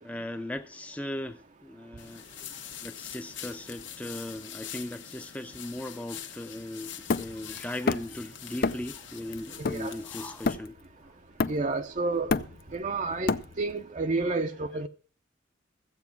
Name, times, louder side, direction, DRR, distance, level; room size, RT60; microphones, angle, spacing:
voice 1, 0.0-2.2 2.8-10.7, left 1 dB, 5° left, 0.5 m, -38 dB
sound 1, 2.0-10.6, left 9 dB, 70° left, 1.3 m, -44 dB
Hammer, 7.1-8.2 8.6-9.0 9.3-10.9 11.4-11.8 12.1-13.8, left 4 dB, 50° left, 0.5 m, -29 dB
voice 2, 9.6-9.9 11.5-12.3 12.7-14.9, right 3 dB, 40° right, 0.6 m, -30 dB
14.0 x 8.1 x 5.8 m
head